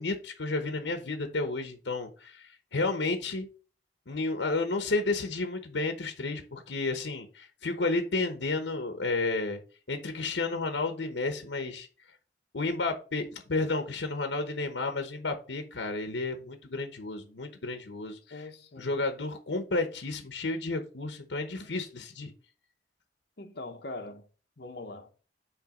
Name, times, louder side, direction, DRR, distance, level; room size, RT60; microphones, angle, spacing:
voice 1, 0.0-3.5 4.1-9.6 9.9-11.9 12.5-18.5 18.8-22.3, left 3 dB, 85° left, 1.0 m, -32 dB
voice 2, 18.3-18.9 23.4-24.3 24.6-25.1, left 2 dB, 65° left, 1.2 m, -42 dB
9.0 x 3.3 x 5.1 m
head